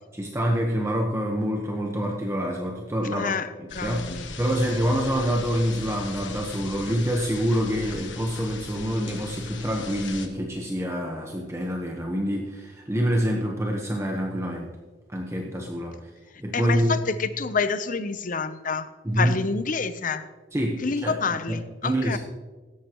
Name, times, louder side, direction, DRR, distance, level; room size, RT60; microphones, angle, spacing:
voice 1, 0.1-3.3 3.6-4.0 4.4-14.7 15.1-16.0 16.4-17.0 19.0-19.3 20.5-21.2 21.5-22.2, equal, 15° right, 0 dB, 1.1 m, -26 dB
voice 2, 3.1-3.5 3.7-4.3 16.5-18.9 19.2-20.3 20.8-22.2, left 4 dB, 45° left, 12 dB, 0.7 m, -28 dB
sound 1, 3.7-10.3, left 4 dB, 85° left, 1.4 m, -39 dB
16.5 x 13.0 x 3.0 m, 1.3 s
head